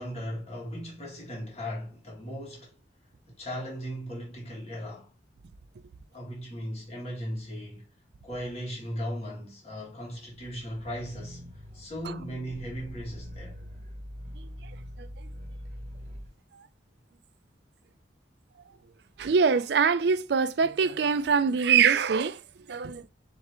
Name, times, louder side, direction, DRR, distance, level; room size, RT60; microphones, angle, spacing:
voice 1, 0.0-2.7 3.4-5.1 6.1-7.8 8.2-13.6, equal, 35° left, 1.8 m, -37 dB
sound 1, 10.3-16.3, equal, 35° right, 1.0 m, -43 dB
voice 2, 15.0-15.3 16.5-16.6 19.2-22.4 22.7-23.1, right 6 dB, 65° right, 0.4 m, -24 dB
4.6 x 3.3 x 2.9 m
head